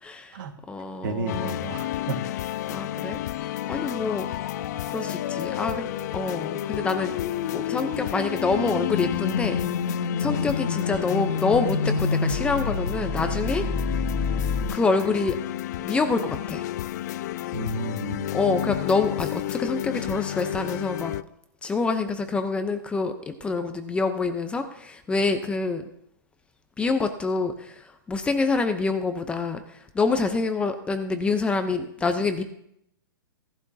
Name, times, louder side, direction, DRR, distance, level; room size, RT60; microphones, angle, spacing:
voice 1, 0.0-0.4 0.7-1.6 2.7-3.2 3.6-4.3 4.9-7.1 7.5-9.6 10.2-13.6 14.7-15.4 15.8-16.6 18.3-21.1 21.6-25.8 26.8-32.4, left 4 dB, 10° left, 8 dB, 0.7 m, -26 dB
voice 2, 1.0-2.2 10.2-10.4 17.5-18.3, right 2 dB, 60° right, 6 dB, 1.7 m, -32 dB
sound 1, 1.3-21.2, left 13 dB, 45° left, 0.4 m, -32 dB
sound 2, 3.3-14.6, left 5 dB, 65° left, 1.7 m, -30 dB
17.0 x 12.0 x 2.8 m, 0.75 s
hypercardioid pair, 150°, 12 cm